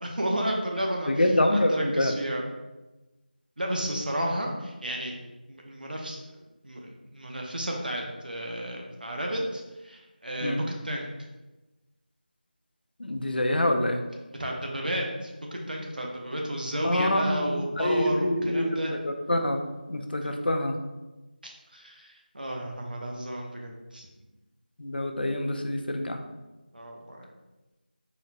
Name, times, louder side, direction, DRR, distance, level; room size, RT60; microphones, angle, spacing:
voice 1, 0.0-1.1 1.5-2.5 3.6-5.2 5.5-11.1 14.4-18.9 20.1-20.3 21.4-24.1 26.7-27.3, right 1 dB, 60° right, 0 dB, 0.7 m, -32 dB
voice 2, 1.1-2.1 10.4-10.6 13.0-14.0 16.8-18.8 19.0-19.6 19.9-20.8 24.8-26.2, left 1 dB, 70° left, 5 dB, 0.5 m, -26 dB
4.0 x 2.1 x 4.0 m, 1.1 s
figure-of-eight pair, 180°, 5 cm